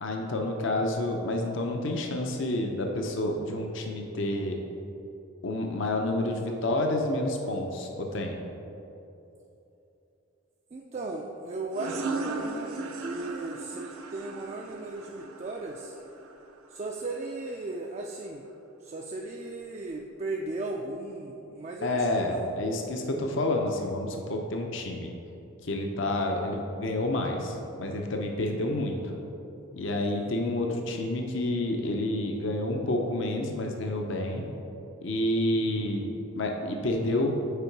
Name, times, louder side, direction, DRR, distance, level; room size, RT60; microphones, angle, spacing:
voice 1, 0.0-4.6 5.4-8.4 21.8-25.1 25.6-29.1 29.7-34.4 35.0-37.3, left 1 dB, 60° left, 2 dB, 0.6 m, -29 dB
voice 2, 10.7-16.0 16.7-18.5 18.8-22.5 26.0-26.3 30.1-30.4 35.5-35.9, right 2 dB, 30° right, 0 dB, 0.3 m, -37 dB
sound 1, 11.7-17.1, right 3 dB, 85° right, 0.6 m, -37 dB
6.7 x 4.6 x 4.6 m, 2.9 s
head